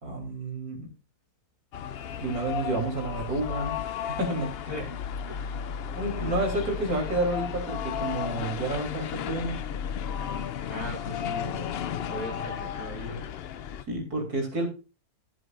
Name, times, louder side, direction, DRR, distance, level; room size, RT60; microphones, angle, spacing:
voice 1, 0.0-0.9 2.2-4.6 6.0-9.6 13.9-14.7, right 2 dB, 70° right, 2 dB, 3.9 m, -30 dB
sound 1, 1.7-13.8, left 8 dB, 65° left, 0.6 m, -34 dB
voice 2, 5.3-5.7 6.1-6.4 10.7-11.7 12.1-13.2, left 1 dB, 85° left, -1 dB, 6.6 m, -38 dB
14.5 x 8.0 x 2.5 m, 0.32 s
omnidirectional pair, 1.7 m